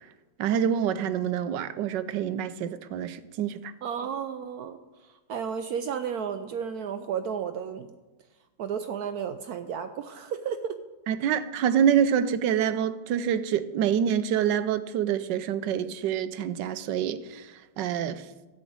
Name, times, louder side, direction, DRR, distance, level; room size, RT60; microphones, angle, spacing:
voice 1, 0.4-3.7 11.1-18.3, right 9 dB, 85° right, 1.3 m, -26 dB
voice 2, 3.8-4.8 5.3-7.9 8.6-10.8, right 7 dB, 70° right, 1.0 m, -32 dB
13.5 x 5.1 x 8.5 m
omnidirectional pair, 1.9 m